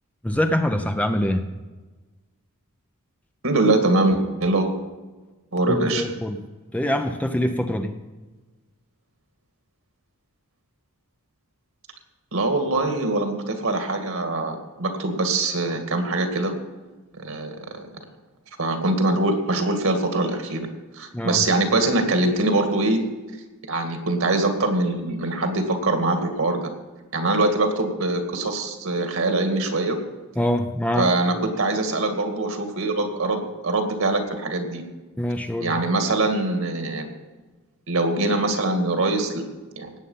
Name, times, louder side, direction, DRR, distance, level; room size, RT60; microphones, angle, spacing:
voice 1, 0.2-1.5 5.7-6.4 6.7-7.9 21.1-21.4 30.4-31.1 35.2-35.7, left 1 dB, 5° left, 6 dB, 0.7 m, -24 dB
voice 2, 3.4-4.7 5.5-6.0 12.3-16.5 17.1-17.9 18.6-20.6 20.9-23.0 23.7-26.6 27.1-30.0 30.9-34.8 35.6-37.1 37.9-39.4 39.8-39.9, right 2 dB, 65° right, 5 dB, 2.2 m, -23 dB
18.0 x 8.2 x 5.6 m, 1.3 s
head